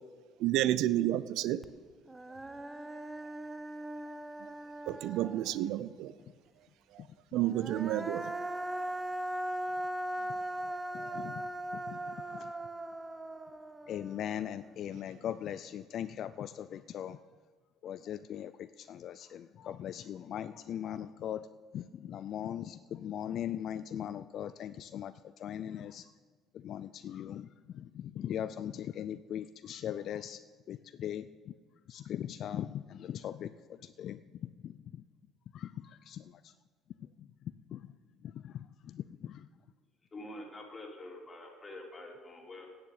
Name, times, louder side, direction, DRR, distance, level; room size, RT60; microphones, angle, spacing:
voice 1, 0.4-1.6 4.4-4.5 4.9-6.1 7.3-8.3 11.0-11.3, right 13 dB, 70° right, 16 dB, 0.5 m, -31 dB
Human voice, 1.6-1.7 2.1-5.7 7.4-14.7, right 1 dB, 15° right, 0.8 m, -39 dB
voice 2, 10.9-12.5 13.9-17.2 17.8-21.5 21.7-26.1 26.5-30.4 30.7-31.5 31.9-35.0 35.5-36.5 37.2-37.3 37.7-37.9 38.2-39.5, left 10 dB, 60° left, 14 dB, 0.4 m, -40 dB
voice 3, 40.1-42.7, left 1 dB, 30° left, 1 dB, 3.2 m, -46 dB
9.6 x 7.4 x 9.3 m, 1.5 s
supercardioid pair, 70°, 0 cm